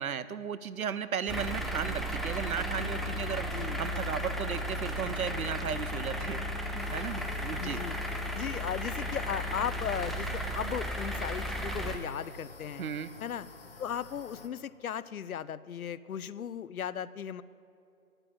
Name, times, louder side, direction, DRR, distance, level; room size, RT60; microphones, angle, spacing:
voice 1, 0.0-7.8 12.8-13.1, right 7 dB, 70° right, 15 dB, 0.7 m, -35 dB
sound 1, 1.3-12.0, equal, ahead, 0.3 m, -34 dB
sound 2, 6.8-14.5, left 3 dB, 40° left, 0.9 m, -51 dB
voice 2, 7.6-8.0 8.3-12.9 13.2-13.5 13.8-17.4, left 9 dB, 70° left, 17 dB, 0.6 m, -36 dB
10.5 x 9.0 x 7.6 m, 2.7 s
hypercardioid pair, 175°, 44 cm